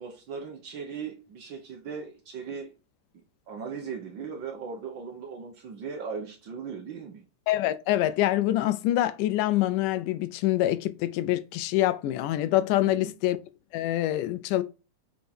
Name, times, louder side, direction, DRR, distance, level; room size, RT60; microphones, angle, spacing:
voice 1, 0.0-2.7 3.1-7.2 12.8-13.1, right 6 dB, 80° right, 1.0 m, -38 dB
voice 2, 7.5-13.4 13.7-14.6, left 14 dB, 80° left, 2.1 m, -25 dB
8.3 x 4.5 x 4.3 m
omnidirectional pair, 3.8 m